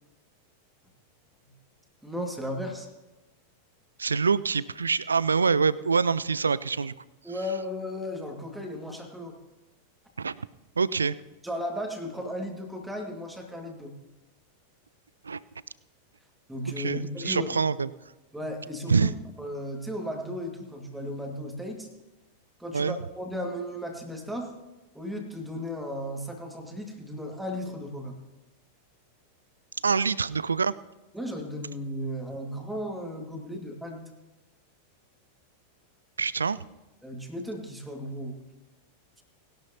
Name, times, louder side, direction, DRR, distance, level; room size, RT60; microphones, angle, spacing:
voice 1, 2.0-2.9 7.2-9.4 11.4-14.0 16.5-17.5 18.3-21.9 22.6-24.5 24.9-28.2 31.1-34.1 37.0-38.4, equal, 5° right, 2 dB, 1.9 m, -35 dB
voice 2, 4.0-6.9 10.2-10.5 10.8-11.2 15.2-15.4 16.7-17.9 18.9-19.1 22.7-23.0 29.8-30.7 36.2-36.6, right 5 dB, 75° right, 20 dB, 0.4 m, -25 dB
20.0 x 11.5 x 2.8 m, 1.0 s
figure-of-eight pair, 90°, 0 cm